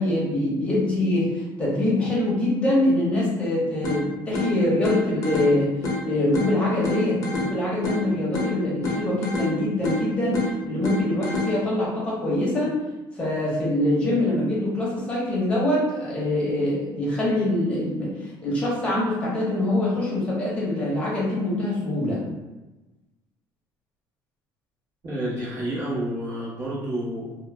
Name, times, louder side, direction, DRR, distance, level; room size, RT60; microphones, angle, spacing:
voice 1, 0.0-12.8 13.1-22.2, left 1 dB, 15° left, -7 dB, 0.9 m, -24 dB
sound 1, 3.8-11.8, left 1 dB, 40° left, 0.7 m, -30 dB
voice 2, 25.0-27.4, right 1 dB, 40° right, -8 dB, 1.0 m, -29 dB
2.4 x 2.0 x 3.2 m, 1.1 s
cardioid pair, 160°, 8 cm